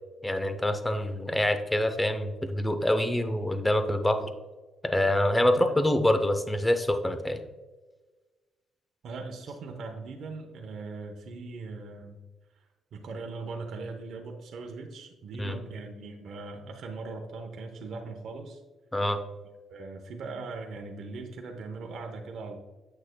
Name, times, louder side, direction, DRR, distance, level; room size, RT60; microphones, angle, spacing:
voice 1, 0.2-4.3 4.8-7.4 15.4-15.6 18.9-19.2, left 1 dB, 10° left, 9 dB, 0.7 m, -26 dB
voice 2, 9.0-12.2 12.6-12.7 12.9-18.6 19.7-22.6, right 3 dB, 65° right, 2 dB, 0.8 m, -40 dB
7.8 x 6.3 x 2.2 m, 1.3 s
cardioid pair, 90°, 0 cm